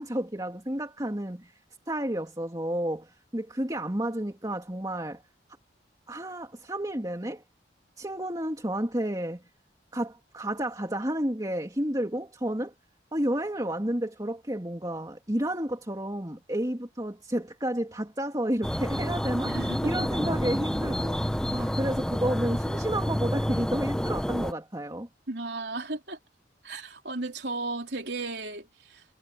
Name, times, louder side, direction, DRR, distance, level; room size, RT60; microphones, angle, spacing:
voice 1, 0.0-1.5 1.9-5.2 6.1-7.4 8.0-9.4 9.9-12.7 13.1-25.1, right 1 dB, 20° right, 2.7 m, -31 dB
sound 1, 18.6-24.5, equal, 5° left, 0.6 m, -29 dB
voice 2, 19.4-20.1 25.3-26.2 26.6-29.0, right 2 dB, 70° right, 3.5 m, -35 dB
head